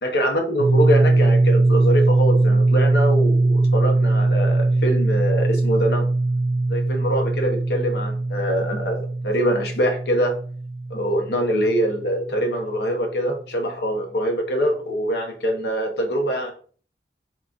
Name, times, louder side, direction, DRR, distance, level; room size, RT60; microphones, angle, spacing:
voice 1, 0.0-6.1 6.7-10.3 10.9-16.5, equal, 75° left, 2 dB, 0.7 m, -24 dB
sound 1, 0.6-12.3, right 2 dB, 65° right, 0.5 m, -20 dB
3.7 x 2.3 x 2.4 m, 0.43 s
head